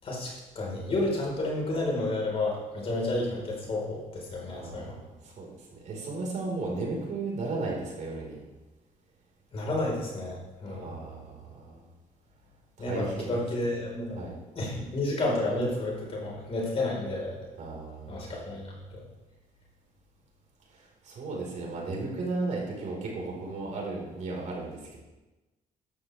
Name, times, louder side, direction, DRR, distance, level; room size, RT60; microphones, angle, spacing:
voice 1, 0.0-5.0 9.5-10.9 12.8-17.4 18.1-19.0, left 2 dB, 40° left, -3 dB, 4.8 m, -31 dB
voice 2, 4.5-8.4 10.7-11.9 12.8-13.3 14.2-14.4 17.6-18.3 20.7-25.0, right 3 dB, 55° right, -2 dB, 5.0 m, -35 dB
15.0 x 12.0 x 3.6 m, 1.1 s
cardioid pair, 140°, 15 cm